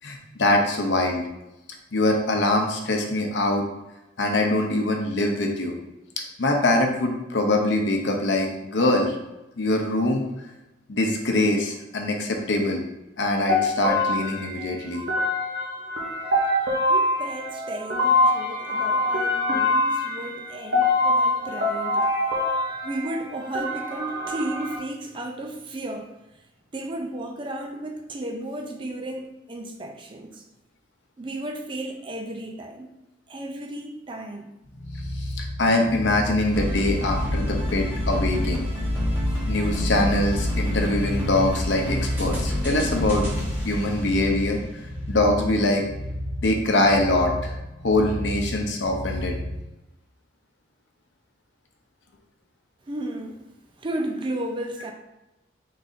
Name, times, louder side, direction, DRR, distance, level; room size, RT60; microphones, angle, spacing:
voice 1, 0.0-1.2 1.9-3.6 4.2-5.8 6.4-9.2 9.6-10.2 10.9-12.8 13.2-15.0 35.2-38.7 39.5-43.3 43.6-44.6 45.1-45.8 46.4-47.5 47.8-49.4, left 2 dB, 70° left, 0.7 m, -23 dB
sound 1, 13.5-24.8, left 2 dB, 60° right, 0.7 m, -24 dB
voice 2, 16.9-22.0 22.8-26.2 26.7-30.4 31.2-32.9 33.3-34.5 52.9-53.5 53.8-54.9, right 1 dB, 25° right, 0.4 m, -34 dB
sound 2, 34.6-49.6, equal, 45° left, 0.9 m, -33 dB
sound 3, 36.5-44.9, left 1 dB, 10° right, 1.0 m, -28 dB
4.0 x 3.9 x 2.5 m
head